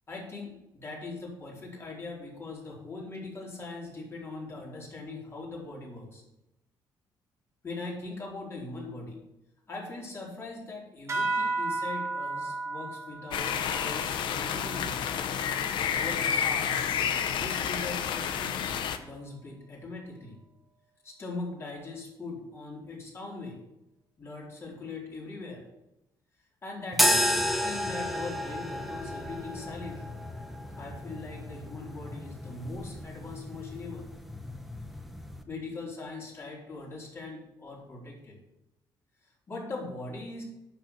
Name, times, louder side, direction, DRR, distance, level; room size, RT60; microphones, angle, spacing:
voice 1, 0.1-6.2 7.6-9.2 9.7-15.0 15.9-16.9 17.4-20.4 21.0-23.6 24.2-25.7 26.6-30.1 30.7-34.1 35.5-38.4 39.2-40.4, left 3 dB, 30° left, -3 dB, 4.0 m, -41 dB
sound 1, 11.1-16.0, right 3 dB, 35° right, 1.7 m, -34 dB
sound 2, 13.3-19.0, left 8 dB, 70° left, 0.9 m, -30 dB
sound 3, 26.9-35.4, equal, ahead, 0.9 m, -32 dB
9.8 x 6.8 x 6.8 m, 0.88 s
cardioid pair, 140°, 8 cm